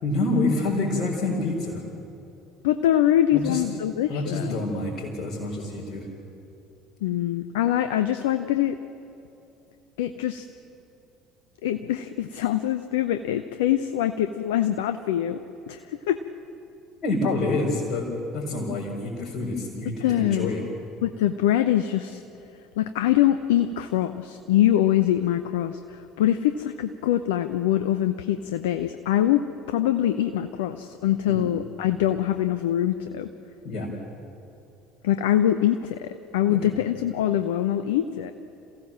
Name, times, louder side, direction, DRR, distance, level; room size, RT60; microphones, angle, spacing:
voice 1, 0.0-1.8 3.3-3.6 4.1-6.0 17.0-18.1 18.3-20.6 31.3-31.5 33.6-33.9 36.5-36.6, left 2 dB, 45° left, -5 dB, 4.7 m, -27 dB
voice 2, 2.6-4.6 7.0-8.8 10.0-10.4 11.6-15.4 15.7-16.2 20.0-20.6 21.0-22.2 22.8-33.3 35.0-38.3, left 12 dB, 70° left, 9 dB, 0.7 m, -24 dB
28.0 x 16.5 x 7.5 m, 2.8 s
figure-of-eight pair, 60°, 0 cm